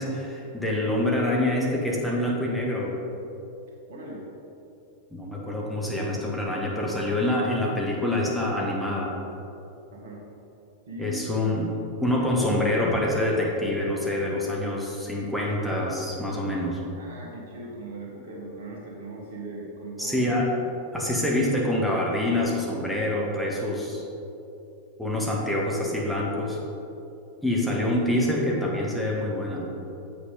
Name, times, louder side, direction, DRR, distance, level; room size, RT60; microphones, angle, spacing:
voice 1, 0.0-3.0 5.1-9.1 11.0-11.7 12.0-16.8 20.0-20.5 20.9-24.1 25.0-26.6 27.4-29.7, left 1 dB, ahead, -4 dB, 1.1 m, -26 dB
voice 2, 3.9-4.2 9.9-10.2 10.9-11.2 16.9-20.3, right 2 dB, 60° right, -2 dB, 1.6 m, -39 dB
7.9 x 5.7 x 3.9 m, 2.8 s
figure-of-eight pair, 90°, 0 cm